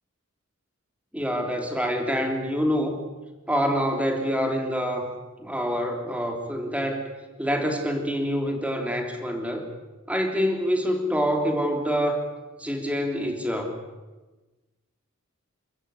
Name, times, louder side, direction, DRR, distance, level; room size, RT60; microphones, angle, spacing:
voice 1, 1.1-3.0 3.5-5.1 5.4-7.1 7.4-9.7 10.1-12.2 12.6-13.8, equal, 5° right, 4 dB, 3.2 m, -26 dB
28.5 x 14.0 x 8.4 m, 1.2 s
head